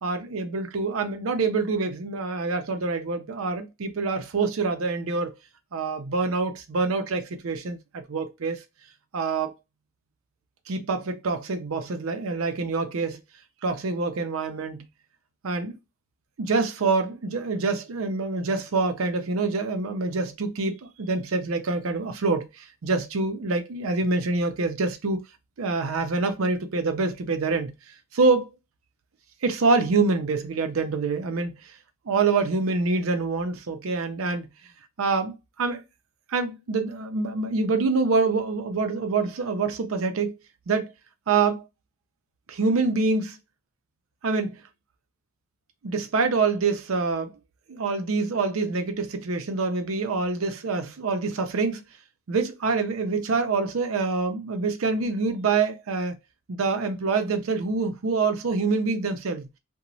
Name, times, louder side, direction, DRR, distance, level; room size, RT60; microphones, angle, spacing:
voice 1, 0.0-5.3 5.7-8.6 9.1-9.5 10.7-13.2 13.6-14.9 15.4-15.8 16.4-25.2 25.6-27.7 28.1-28.5 29.4-31.7 32.1-34.5 35.0-35.8 36.3-40.3 40.7-40.9 41.3-41.7 42.5-43.4 44.2-44.6 45.8-47.3 47.7-51.8 52.3-56.2 56.5-59.5, right 4 dB, 90° right, 0.5 m, -26 dB
2.9 x 2.2 x 2.6 m
head